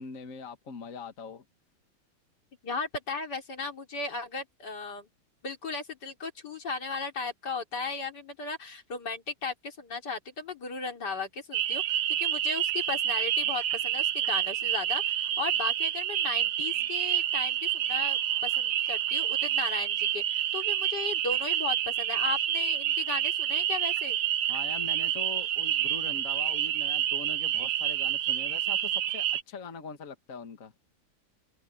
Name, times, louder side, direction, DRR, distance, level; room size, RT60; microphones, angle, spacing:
voice 1, 0.0-1.4 24.5-30.7, left 5 dB, 45° left, 1.8 m, -42 dB
voice 2, 2.6-5.1 5.4-24.2, left 4 dB, 65° left, 3.9 m, -36 dB
sound 1, 11.5-29.4, right 11 dB, 70° right, 1.4 m, -28 dB
omnidirectional pair, 2.0 m